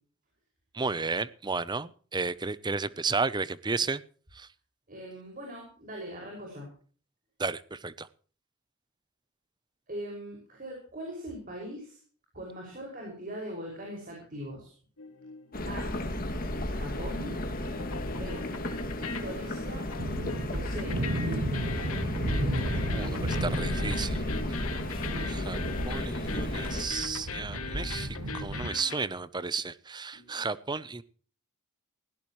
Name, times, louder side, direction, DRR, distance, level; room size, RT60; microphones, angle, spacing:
voice 1, 0.7-4.0 4.3-4.5 7.4-8.1 22.9-24.2 24.9-25.0 25.3-25.6 25.9-31.0, right 4 dB, 20° right, 17 dB, 0.6 m, -33 dB
voice 2, 4.9-6.7 9.9-12.0 12.3-14.8 15.7-15.9 16.7-17.4 18.1-18.5 19.0-19.9 20.5-21.8 25.0-25.4 30.1-30.4, equal, 40° right, -1 dB, 5.7 m, -41 dB
sound 1, 15.0-17.2 17.4-29.1, left 4 dB, 80° left, 2.1 m, -41 dB
sound 2, 15.5-26.8, left 1 dB, 40° left, 2.3 m, -34 dB
sound 3, 20.0-28.7, right 1 dB, 85° right, 1.6 m, -34 dB
18.5 x 16.5 x 3.1 m, 0.44 s
head